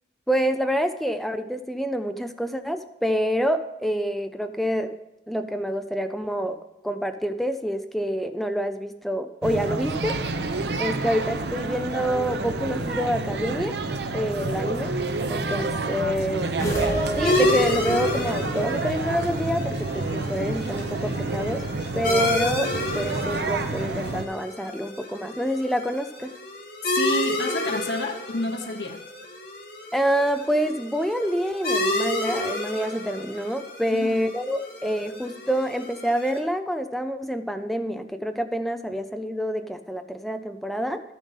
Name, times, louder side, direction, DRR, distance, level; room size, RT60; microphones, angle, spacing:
voice 1, 0.3-4.9 5.3-10.2 10.8-13.8 14.1-14.9 15.3-16.5 17.2-21.6 21.9-22.7 22.9-26.4 29.9-41.0, equal, ahead, 7 dB, 0.4 m, -27 dB
sound 1, 9.4-24.2, right 3 dB, 80° right, 0.7 m, -29 dB
sound 2, 16.6-18.1, right 1 dB, 15° left, 2.3 m, -28 dB
sound 3, 17.2-36.4, left 1 dB, 55° left, 2.6 m, -30 dB
voice 2, 26.8-29.0 33.9-34.3, left 2 dB, 85° left, 2 dB, 0.9 m, -29 dB
12.0 x 7.2 x 5.5 m, 0.91 s
head